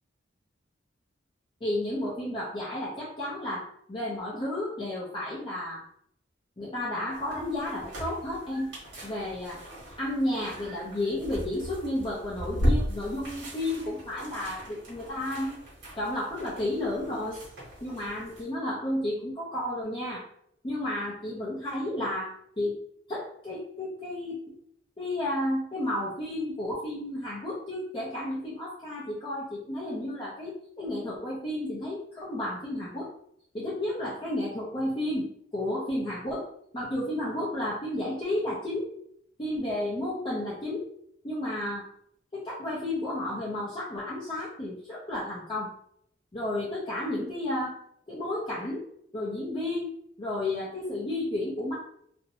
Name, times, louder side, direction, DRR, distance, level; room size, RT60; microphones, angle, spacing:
voice 1, 1.6-5.8 6.6-8.7 9.0-9.6 10.0-15.6 16.0-17.5 17.8-20.2 20.6-22.3 22.6-22.8 23.1-24.4 25.0-33.1 33.5-36.4 36.7-38.8 39.4-40.8 41.2-41.8 42.3-45.7 46.3-47.8 48.1-48.8 49.1-49.9 50.2-51.7, left 1 dB, 25° left, -8 dB, 0.5 m, -32 dB
sound 1, 7.1-18.4, equal, 75° right, 1.2 m, -36 dB
2.6 x 2.0 x 2.7 m, 0.70 s
head